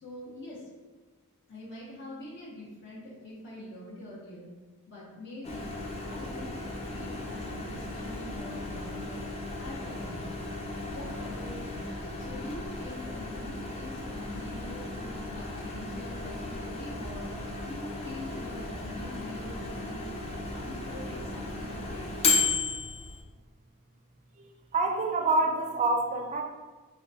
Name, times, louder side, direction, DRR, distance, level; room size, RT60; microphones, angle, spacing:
voice 1, 0.0-0.7 1.5-4.5 4.9-5.8 6.0-9.3 9.6-10.4 10.8-11.9 12.2-17.3 17.6-20.2 20.5-22.5, left 1 dB, 55° left, -6 dB, 0.8 m, -44 dB
Microwave oven, 5.4-23.2, left 3 dB, 30° left, 0.4 m, -35 dB
voice 2, 24.4-26.4, right 2 dB, 35° right, 2 dB, 0.4 m, -27 dB
3.6 x 2.2 x 2.6 m, 1.3 s
head